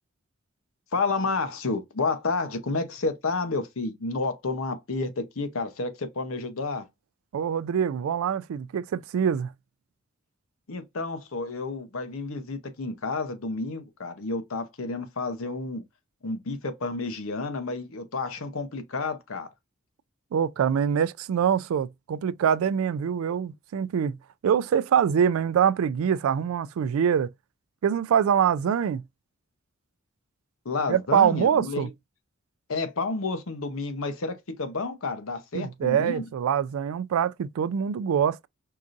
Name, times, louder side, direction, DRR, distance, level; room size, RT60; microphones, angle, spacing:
voice 1, 0.9-6.8 10.7-15.8 16.2-19.5 30.6-31.9 32.7-36.2, left 3 dB, 85° left, 0.8 m, -30 dB
voice 2, 7.3-9.5 20.3-24.2 24.4-27.3 27.8-29.0 30.9-31.9 35.5-38.5, right 8 dB, 90° right, 0.3 m, -24 dB
4.7 x 2.6 x 2.4 m
head